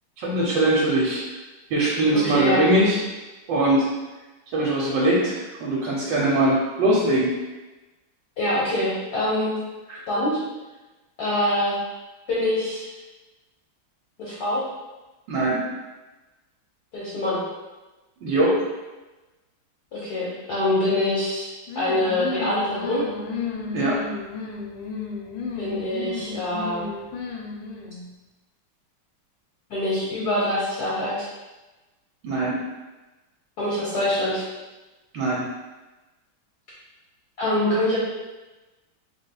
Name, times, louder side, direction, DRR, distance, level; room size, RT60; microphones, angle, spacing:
voice 1, 0.2-1.2 1.7-3.0 3.5-3.8 4.5-7.3 15.3-15.6 18.2-18.6 23.7-24.0 32.2-32.6 35.1-35.5, right 1 dB, 70° right, -4 dB, 1.1 m, -21 dB
voice 2, 2.1-2.6 8.4-9.6 9.9-10.4 11.2-11.8 12.3-12.8 14.2-14.6 16.9-17.4 19.9-21.5 21.7-23.0 25.6-26.9 29.7-31.3 33.6-34.5 37.4-38.0, left 1 dB, 65° left, -8 dB, 1.1 m, -24 dB
sound 1, 21.7-28.1, left 5 dB, 80° left, 1.4 m, -33 dB
3.9 x 3.4 x 2.2 m, 1.1 s
omnidirectional pair, 2.3 m